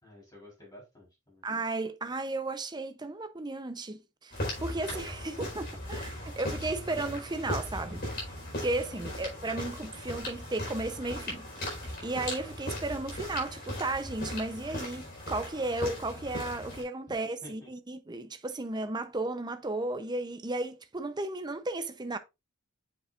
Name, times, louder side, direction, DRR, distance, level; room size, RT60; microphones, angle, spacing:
voice 1, 0.0-1.5 5.2-6.3 8.9-9.3 17.4-17.7, left 2 dB, 20° left, 4.1 m, -53 dB
voice 2, 1.4-8.0 8.6-11.5 12.0-22.2, right 2 dB, 20° right, 0.7 m, -34 dB
sound 1, 4.3-16.8, left 1 dB, 50° left, 4.4 m, -38 dB
7.3 x 6.8 x 2.5 m
head